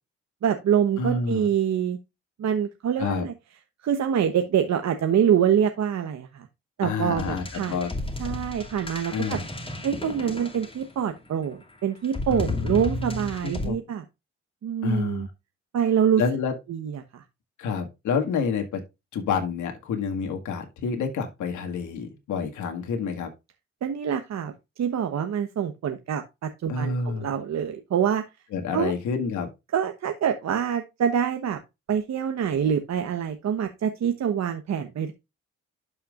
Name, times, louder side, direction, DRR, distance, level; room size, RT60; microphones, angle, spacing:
voice 1, 0.4-2.0 2.4-3.3 3.8-6.5 6.8-7.8 8.2-9.4 9.8-14.0 14.6-15.3 15.7-16.2 16.7-17.2 23.8-24.5 24.8-28.2 28.7-28.9 29.7-31.6 31.9-35.1, right 8 dB, 65° right, 7 dB, 1.1 m, -25 dB
voice 2, 1.0-1.5 3.0-3.3 6.8-7.9 9.1-9.4 12.3-13.8 14.8-15.3 16.2-16.5 17.6-18.8 19.1-23.3 26.7-27.3 28.5-29.5, left 5 dB, 90° left, 4 dB, 1.9 m, -28 dB
sound 1, 7.2-11.2 12.0-13.7, left 2 dB, 20° left, 2.3 m, -34 dB
12.0 x 5.7 x 2.4 m, 0.24 s
cardioid pair, 75°, 29 cm